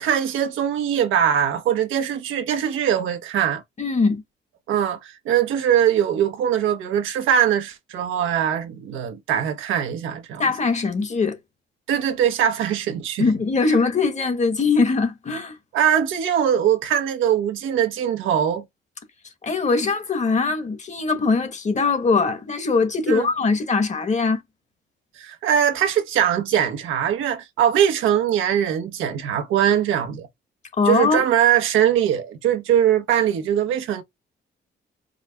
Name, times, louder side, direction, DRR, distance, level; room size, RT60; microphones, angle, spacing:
voice 1, 0.0-3.6 4.7-10.4 11.9-13.3 15.7-18.6 23.1-23.3 25.2-30.3 30.8-34.0, right 9 dB, 85° right, 0.9 m, -21 dB
voice 2, 3.8-4.2 10.4-11.4 13.2-15.6 19.4-24.4 30.8-31.2, left 4 dB, 35° left, 1.1 m, -21 dB
4.9 x 2.1 x 3.4 m
cardioid pair, 90°, 20 cm